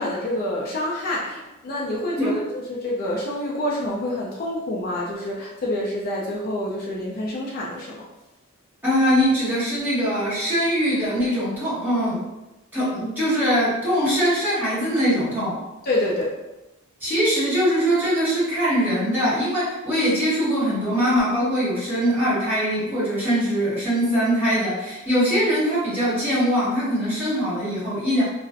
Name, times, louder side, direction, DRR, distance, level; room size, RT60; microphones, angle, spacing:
voice 1, 0.0-8.1 15.8-16.3, left 1 dB, 45° left, -4 dB, 0.4 m, -27 dB
voice 2, 8.8-12.2 12.7-15.6 17.0-28.2, equal, 10° right, -10 dB, 1.0 m, -22 dB
2.5 x 2.0 x 2.4 m, 1.0 s
head